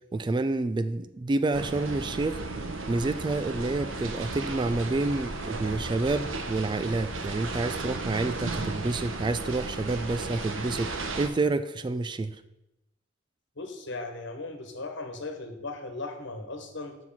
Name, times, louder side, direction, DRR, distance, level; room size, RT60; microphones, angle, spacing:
voice 1, 0.1-2.4 2.9-12.4, right 2 dB, 25° right, 12 dB, 0.3 m, -29 dB
sound 1, 1.5-11.3, right 3 dB, 80° right, 1.0 m, -35 dB
voice 2, 13.6-17.0, left 2 dB, 65° left, 5 dB, 1.3 m, -37 dB
7.1 x 6.0 x 5.7 m, 0.91 s
head